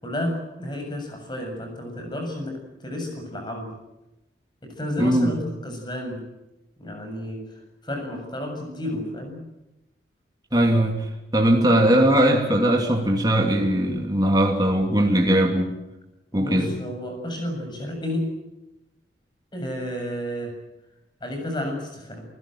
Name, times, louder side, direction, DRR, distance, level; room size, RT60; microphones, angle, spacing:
voice 1, 0.0-3.7 4.6-6.2 6.8-7.4 7.8-9.4 16.3-18.3 19.5-20.5 21.2-22.3, left 1 dB, 25° left, 4 dB, 7.2 m, -31 dB
voice 2, 5.0-5.3 10.5-15.7 16.3-16.7, right 1 dB, 20° right, 2 dB, 2.7 m, -20 dB
28.5 x 16.0 x 9.1 m, 0.96 s
head